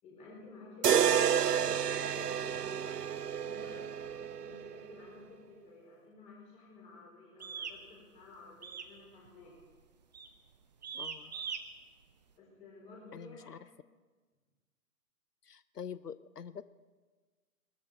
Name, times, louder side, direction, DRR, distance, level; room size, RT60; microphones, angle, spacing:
voice 1, 0.0-9.5 11.2-11.4 12.3-13.6, left 3 dB, 15° left, -3 dB, 4.3 m, -53 dB
sound 1, 0.8-4.9, right 8 dB, 85° right, 0.6 m, -30 dB
sound 2, 7.4-7.8 8.6-9.0 9.2-9.6 10.1-10.4 10.8-11.6, right 6 dB, 30° right, 0.8 m, -40 dB
voice 2, 10.9-11.4 13.1-13.7 15.4-16.6, left 7 dB, 90° left, 16 dB, 0.6 m, -45 dB
19.5 x 13.5 x 4.7 m, 1.4 s
figure-of-eight pair, 140°, 46 cm